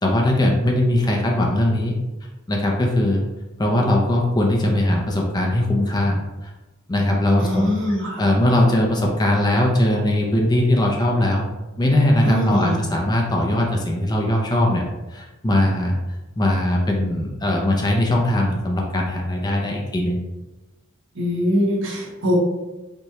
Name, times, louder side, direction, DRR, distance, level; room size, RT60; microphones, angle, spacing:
voice 1, 0.0-1.9 2.5-3.2 3.6-6.5 6.9-7.8 8.2-11.4 11.8-14.8 15.1-16.0 16.4-20.2, left 1 dB, 20° left, -1 dB, 0.4 m, -20 dB
voice 2, 7.4-8.2 12.2-12.8 21.2-22.4, equal, 60° right, -2 dB, 0.9 m, -22 dB
3.4 x 3.1 x 2.8 m, 1.1 s
head